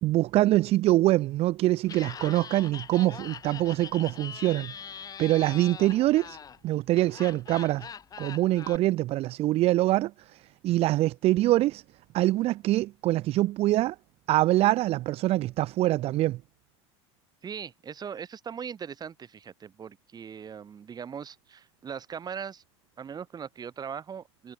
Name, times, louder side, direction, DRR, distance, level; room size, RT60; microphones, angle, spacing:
voice 1, 0.0-6.4 6.6-7.9 8.2-11.8 12.1-14.0 14.3-16.4, right 16 dB, 40° right, 0.6 m, -24 dB
Laughter, 1.8-8.8, left 7 dB, 25° left, 1.1 m, -42 dB
voice 2, 10.7-11.0 17.4-22.6 23.0-24.5, right 7 dB, 25° right, 3.1 m, -40 dB
hypercardioid pair, 105°, 15 cm